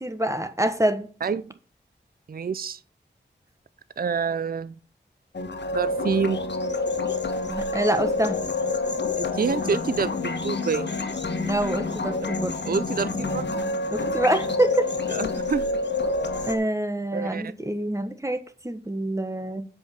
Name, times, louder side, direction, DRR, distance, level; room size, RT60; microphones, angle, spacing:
voice 1, 0.0-1.1 7.5-8.4 11.4-12.5 13.9-14.9 16.5-19.7, right 1 dB, 15° right, 1.4 m, -26 dB
voice 2, 1.2-1.5 2.3-2.8 4.0-4.7 5.7-6.4 9.2-10.9 12.7-13.5 15.1-15.7 17.1-17.5, right 5 dB, 50° right, 0.5 m, -27 dB
sound 1, 5.3-16.6, left 3 dB, 65° left, 1.4 m, -28 dB
7.7 x 5.2 x 7.2 m
cardioid pair, 40°, 19 cm